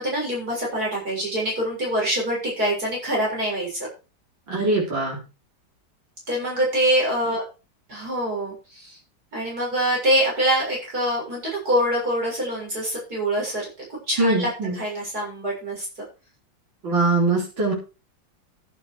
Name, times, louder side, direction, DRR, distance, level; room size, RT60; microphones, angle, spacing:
voice 1, 0.0-3.9 6.3-7.4 7.9-9.0 9.3-13.6 13.9-15.9, right 1 dB, 50° right, -3 dB, 7.2 m, -25 dB
voice 2, 4.5-5.2 14.2-14.8 16.8-17.7, right 2 dB, 75° right, -3 dB, 4.9 m, -22 dB
12.0 x 8.5 x 4.8 m, 0.32 s
omnidirectional pair, 2.1 m